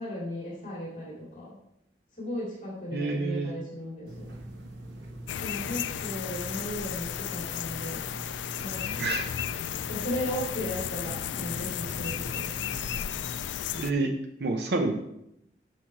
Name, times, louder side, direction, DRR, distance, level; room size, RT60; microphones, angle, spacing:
voice 1, 0.0-1.6 2.2-4.3 5.4-8.1 8.6-9.0 9.6-12.7, left 1 dB, 45° left, -5 dB, 2.4 m, -36 dB
voice 2, 2.9-3.5 9.0-9.3 13.7-14.1 14.4-14.9, right 3 dB, 65° right, 3 dB, 0.7 m, -28 dB
sound 1, 4.1-13.4, right 1 dB, 85° right, 1.3 m, -43 dB
sound 2, 5.3-13.9, left 10 dB, 85° left, 0.3 m, -34 dB
6.4 x 6.2 x 4.5 m, 0.79 s
head